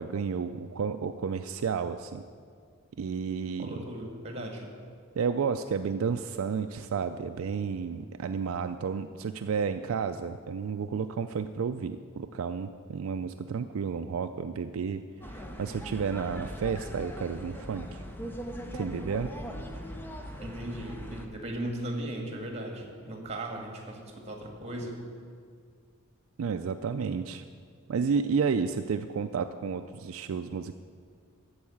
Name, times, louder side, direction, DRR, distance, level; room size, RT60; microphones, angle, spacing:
voice 1, 0.0-2.2 3.0-3.7 5.2-18.0 18.7-19.3 26.4-27.4 27.9-30.7, right 6 dB, 75° right, 8 dB, 0.4 m, -31 dB
voice 2, 3.6-4.7 20.4-25.0, right 1 dB, 30° right, 2 dB, 1.8 m, -37 dB
sound 1, 15.2-21.3, equal, 10° left, 0.8 m, -40 dB
13.5 x 4.8 x 8.5 m, 2.1 s
head